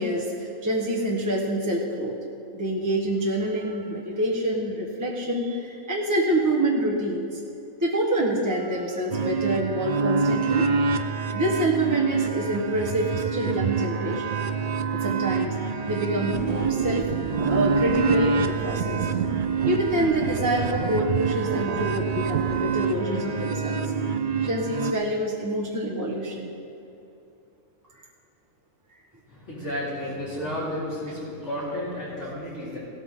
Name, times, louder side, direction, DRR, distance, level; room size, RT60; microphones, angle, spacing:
voice 1, 0.0-2.2 2.5-7.4 7.8-10.7 11.3-14.4 14.9-15.5 15.9-17.0 17.5-19.1 19.6-23.8 24.4-26.5, right 1 dB, 15° right, -4 dB, 1.2 m, -26 dB
sound 1, 9.1-24.9, right 5 dB, 60° right, 0.4 m, -26 dB
sound 2, 16.3-22.8, right 8 dB, 80° right, 1.1 m, -32 dB
voice 2, 29.3-32.8, left 1 dB, 55° left, -8 dB, 4.5 m, -32 dB
16.5 x 13.0 x 3.8 m, 2.7 s
omnidirectional pair, 1.4 m